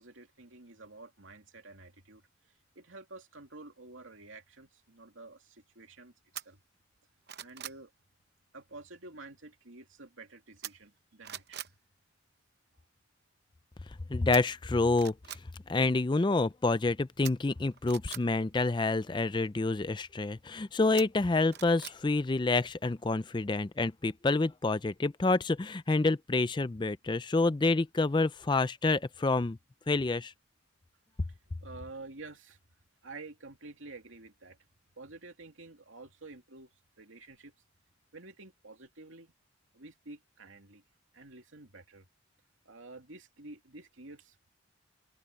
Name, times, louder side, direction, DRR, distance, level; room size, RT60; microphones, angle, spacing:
voice 1, 0.0-6.6 7.4-7.9 8.5-11.7 31.3-32.6 33.0-34.6 35.0-36.7 37.0-37.5 38.1-39.3 39.7-40.8 41.1-42.1 42.6-44.4, right 3 dB, 75° right, 2.6 m, -50 dB
sound 1, 6.3-6.5 7.0-7.8 10.6-11.0 11.2-11.7 14.3-14.4 14.9-15.4 17.2-18.2 21.0-22.0 22.3-22.4, right 11 dB, 50° right, 0.8 m, -43 dB
voice 2, 14.1-15.1 15.7-29.6 29.9-30.3, left 3 dB, 20° left, 0.4 m, -28 dB
open air
head